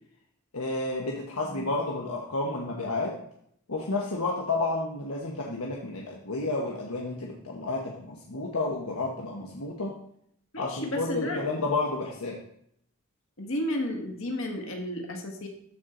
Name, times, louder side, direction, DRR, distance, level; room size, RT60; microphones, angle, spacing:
voice 1, 0.5-3.2 3.7-9.9 10.6-12.4, left 2 dB, 90° left, -2 dB, 1.2 m, -31 dB
voice 2, 10.5-11.7 13.4-15.5, left 1 dB, 65° left, 2 dB, 1.7 m, -33 dB
13.5 x 4.5 x 3.9 m, 0.71 s
head